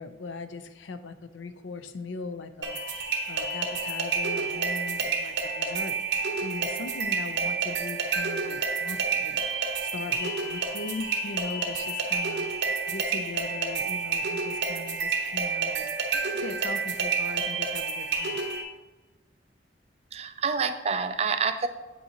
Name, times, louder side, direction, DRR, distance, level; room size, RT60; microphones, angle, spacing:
voice 1, 0.0-18.4, left 3 dB, 85° left, 10 dB, 0.5 m, -40 dB
sound 1, 2.6-18.6, right 4 dB, 65° right, 0.9 m, -29 dB
voice 2, 20.1-21.7, right 5 dB, 35° right, 9 dB, 0.4 m, -27 dB
7.9 x 5.5 x 2.8 m, 1.2 s
head